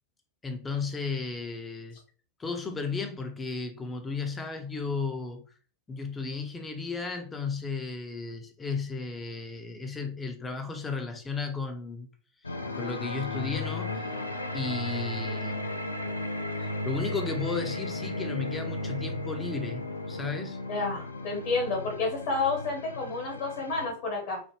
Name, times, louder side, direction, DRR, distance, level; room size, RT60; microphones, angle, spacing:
voice 1, 0.4-2.0 2.4-5.4 5.9-12.1 12.7-14.1 14.5-15.7 16.6-20.6, left 4 dB, 15° left, 0.6 m, -34 dB
sound 1, 12.4-23.9, left 2 dB, 80° left, 0.3 m, -35 dB
voice 2, 20.7-24.4, left 3 dB, 50° left, 1.0 m, -30 dB
3.2 x 2.1 x 3.1 m
figure-of-eight pair, 90°, 0 cm